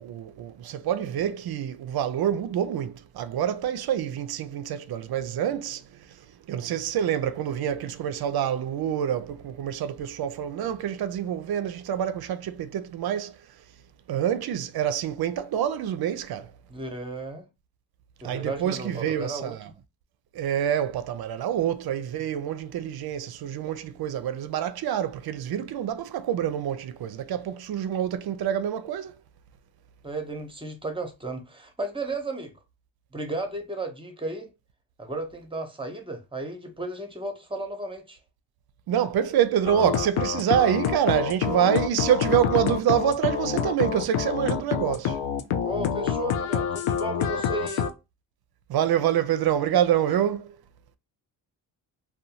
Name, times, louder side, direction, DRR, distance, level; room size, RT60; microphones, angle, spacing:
voice 1, 0.0-6.2 6.5-13.4 14.1-16.5 18.2-19.7 20.3-29.2 38.9-45.2 48.7-50.6, right 10 dB, 55° right, 0.5 m, -26 dB
voice 2, 16.7-17.5 18.2-19.5 30.0-32.5 33.1-34.5 35.0-38.2 45.6-47.9, right 2 dB, 10° right, 0.7 m, -34 dB
sound 1, 39.6-47.9, left 8 dB, 85° left, 0.5 m, -27 dB
2.5 x 2.2 x 2.8 m
cardioid pair, 70°, 46 cm